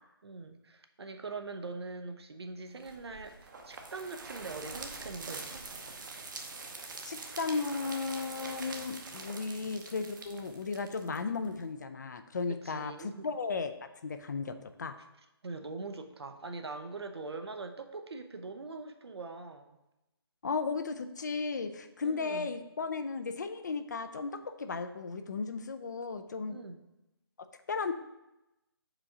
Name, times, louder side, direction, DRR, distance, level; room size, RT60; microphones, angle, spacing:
voice 1, 0.2-5.7 9.4-9.8 12.5-13.3 15.4-19.8 22.0-22.5 26.5-26.8, right 3 dB, 80° right, 7 dB, 0.8 m, -42 dB
sound 1, 2.8-11.6, right 3 dB, 50° right, 0.8 m, -45 dB
voice 2, 7.0-15.0 20.4-26.6 27.7-27.9, left 4 dB, 45° left, 9 dB, 0.5 m, -35 dB
4.9 x 3.7 x 5.6 m, 0.94 s
hypercardioid pair, 165°, 13 cm